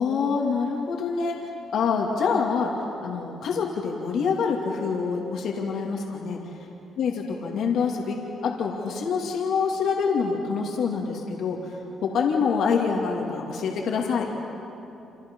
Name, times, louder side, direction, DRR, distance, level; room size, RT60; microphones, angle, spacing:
voice 1, 0.0-1.4 1.7-2.8 3.0-6.5 7.0-11.7 12.0-14.3, left 5 dB, 75° left, 0 dB, 2.6 m, -26 dB
28.5 x 27.5 x 5.5 m, 2.9 s
cardioid pair, 90°, 0 cm